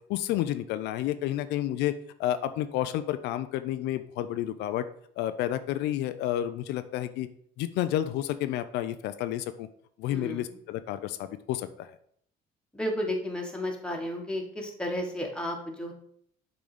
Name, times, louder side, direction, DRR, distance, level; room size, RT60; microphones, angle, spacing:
voice 1, 0.1-4.8 5.2-7.3 7.6-9.7 10.0-11.9, left 12 dB, 85° left, 11 dB, 0.5 m, -30 dB
voice 2, 10.1-10.5 12.7-15.9, left 1 dB, 5° left, 1 dB, 1.5 m, -32 dB
6.9 x 3.9 x 4.9 m, 0.66 s
cardioid pair, 110°, 17 cm